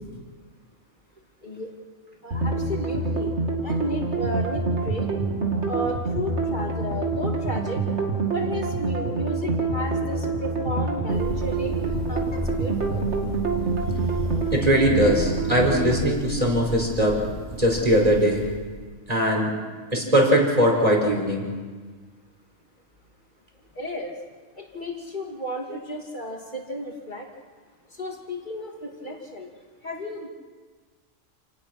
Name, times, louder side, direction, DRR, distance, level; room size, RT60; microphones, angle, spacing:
voice 1, 1.4-1.7 2.2-3.3 3.6-5.1 5.7-7.8 8.3-11.7 12.1-13.0 23.7-24.1 24.6-27.2 27.9-29.5 29.8-30.3, left 1 dB, 40° left, 0 dB, 3.0 m, -33 dB
sound 1, 2.3-16.0, right 3 dB, 65° right, 2.7 m, -26 dB
Thunder, 11.1-19.0, left 1 dB, 90° left, 2.8 m, -35 dB
voice 2, 14.5-17.2 17.5-18.4 19.1-19.5 19.9-21.4, equal, 30° right, 0 dB, 5.0 m, -20 dB
29.0 x 18.5 x 6.1 m, 1.5 s
omnidirectional pair, 1.3 m